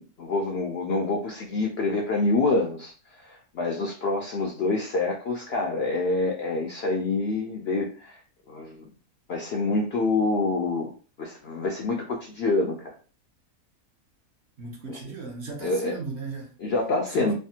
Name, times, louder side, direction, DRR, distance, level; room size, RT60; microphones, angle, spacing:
voice 1, 0.0-2.9 3.2-8.2 8.5-8.9 9.3-10.9 11.2-12.9 14.9-15.0 15.6-16.0 16.6-17.3, left 3 dB, 70° left, 0.6 m, -27 dB
voice 2, 14.6-16.5 17.1-17.3, right 4 dB, 55° right, 0.9 m, -36 dB
3.3 x 2.0 x 2.7 m
omnidirectional pair, 1.6 m